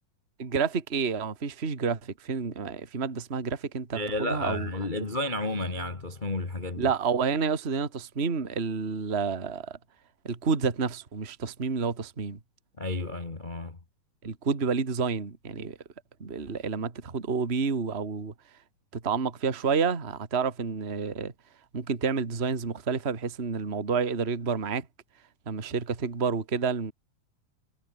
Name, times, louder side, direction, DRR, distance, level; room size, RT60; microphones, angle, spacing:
voice 1, 0.4-4.7 6.8-9.8 10.2-12.4 14.2-15.8 16.2-18.3 18.9-21.3 21.7-24.9 25.5-26.9, right 5 dB, 20° right, 2.0 m, -29 dB
voice 2, 3.9-6.9 12.8-13.8, left 1 dB, 30° left, 0.8 m, -32 dB
sound 1, 4.3-7.9, left 6 dB, 55° left, 5.1 m, -54 dB
omnidirectional pair, 4.4 m